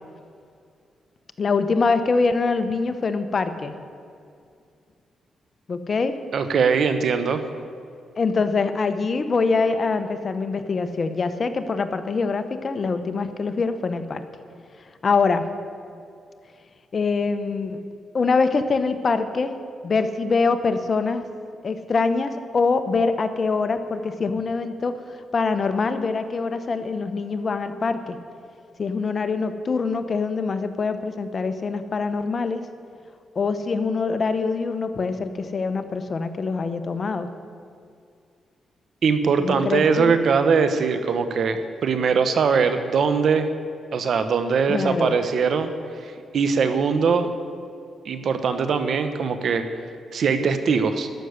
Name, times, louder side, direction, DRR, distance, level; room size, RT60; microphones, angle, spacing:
voice 1, 1.4-3.7 5.7-6.2 8.2-14.3 15.0-15.5 16.9-17.8 18.1-19.5 19.8-21.2 21.6-28.2 28.8-32.7 33.3-37.3 39.4-40.1 44.7-45.1, left 4 dB, 45° left, 9 dB, 0.9 m, -24 dB
voice 2, 6.3-7.4 39.0-43.5 43.9-45.7 46.0-47.3 48.0-49.6 50.1-51.1, right 5 dB, 65° right, 9 dB, 1.0 m, -21 dB
13.5 x 6.4 x 9.6 m, 2.3 s
cardioid pair, 85°, 0 cm